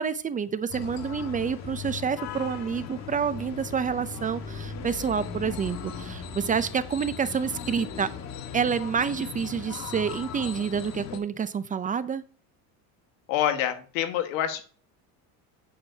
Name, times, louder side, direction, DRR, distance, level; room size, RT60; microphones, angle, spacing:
voice 1, 0.0-8.1 8.5-12.2, right 6 dB, 20° right, 13 dB, 0.5 m, -28 dB
sound 1, 0.7-11.2, left 6 dB, 45° left, 1.6 m, -38 dB
voice 2, 5.2-5.6 13.3-14.6, left 10 dB, 85° left, 8 dB, 1.6 m, -28 dB
9.0 x 8.5 x 2.8 m, 0.41 s
supercardioid pair, 125°, 38 cm